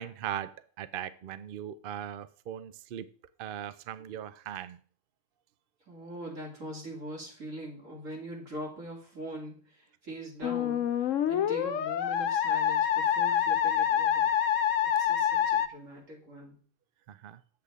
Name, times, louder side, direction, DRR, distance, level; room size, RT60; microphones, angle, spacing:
voice 1, 0.0-3.1 3.4-4.8 17.1-17.4, right 10 dB, 60° right, 0.6 m, -39 dB
voice 2, 5.9-14.3 15.0-16.6, right 1 dB, 85° right, 3.2 m, -42 dB
Musical instrument, 10.4-15.7, left 9 dB, 75° left, 1.1 m, -26 dB
8.2 x 7.8 x 3.6 m
omnidirectional pair, 1.3 m